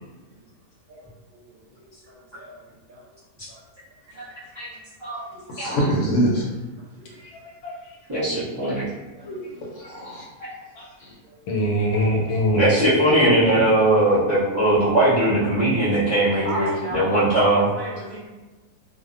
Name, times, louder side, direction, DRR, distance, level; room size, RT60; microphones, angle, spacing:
voice 1, 0.9-3.1 3.5-3.6 4.1-4.2 4.7-4.8 5.3-5.4 7.0-7.1 9.1-9.6 11.2-11.7 16.4-18.3, right 1 dB, 70° right, -4 dB, 1.0 m, -36 dB
voice 2, 5.5-6.5 9.2-10.2 11.0-11.2, equal, 65° left, -4 dB, 0.8 m, -25 dB
voice 3, 7.1-7.9 9.8-9.9 10.8-10.9 11.5-12.6, equal, 85° left, -3 dB, 1.2 m, -24 dB
voice 4, 8.1-8.8 10.4-10.5 12.5-17.6, right 1 dB, 50° right, -11 dB, 0.3 m, -19 dB
2.6 x 2.1 x 2.4 m, 1.1 s
omnidirectional pair, 1.6 m